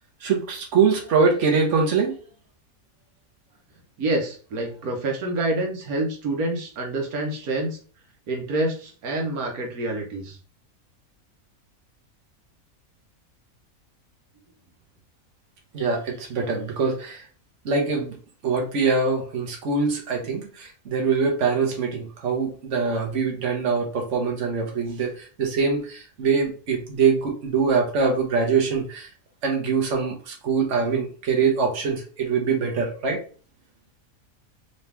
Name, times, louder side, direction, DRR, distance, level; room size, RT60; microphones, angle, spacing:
voice 1, 0.2-2.2 15.7-17.2 17.6-18.1 18.4-29.1 29.4-33.2, right 5 dB, 55° right, 1 dB, 1.4 m, -23 dB
voice 2, 4.0-7.8 8.3-10.4, right 2 dB, 85° right, 1 dB, 1.4 m, -27 dB
4.0 x 3.0 x 3.4 m, 0.40 s
omnidirectional pair, 1.5 m